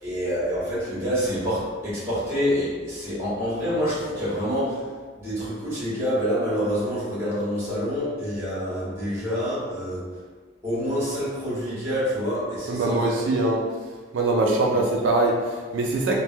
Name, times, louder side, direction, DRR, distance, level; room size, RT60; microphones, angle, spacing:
voice 1, 0.0-4.8 5.1-10.1 10.6-13.2 14.4-14.8, equal, 15° right, -10 dB, 1.5 m, -27 dB
voice 2, 12.7-13.6 14.1-16.2, right 2 dB, 90° right, 0 dB, 0.4 m, -22 dB
3.3 x 2.2 x 2.7 m, 1.5 s
head